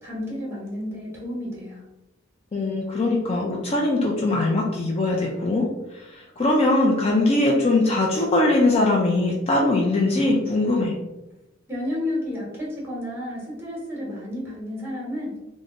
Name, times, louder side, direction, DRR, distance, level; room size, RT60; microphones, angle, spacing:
voice 1, 0.0-1.8 11.7-15.4, left 1 dB, 10° right, -5 dB, 1.2 m, -31 dB
voice 2, 2.5-10.9, left 2 dB, 30° left, -1 dB, 0.4 m, -21 dB
3.5 x 2.0 x 3.5 m, 0.98 s
head